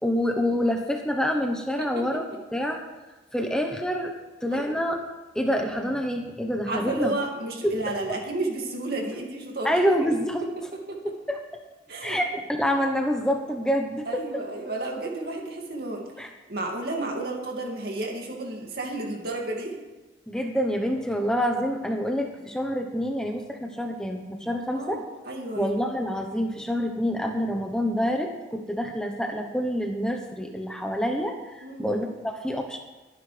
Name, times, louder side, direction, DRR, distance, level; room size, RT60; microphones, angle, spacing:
voice 1, 0.0-2.2 2.5-2.8 3.3-4.1 4.4-5.0 5.3-7.1 7.6-7.8 9.6-10.5 11.0-11.4 12.0-12.3 12.6-14.1 16.2-16.3 20.3-25.0 25.6-32.8, equal, 5° left, 2 dB, 1.0 m, -27 dB
voice 2, 1.8-2.2 4.5-4.8 6.7-9.7 10.9-11.0 11.9-12.2 14.1-16.0 16.5-19.8 24.7-25.7 31.6-31.9, right 2 dB, 55° right, 0 dB, 2.4 m, -32 dB
22.0 x 9.8 x 3.4 m, 1.1 s
head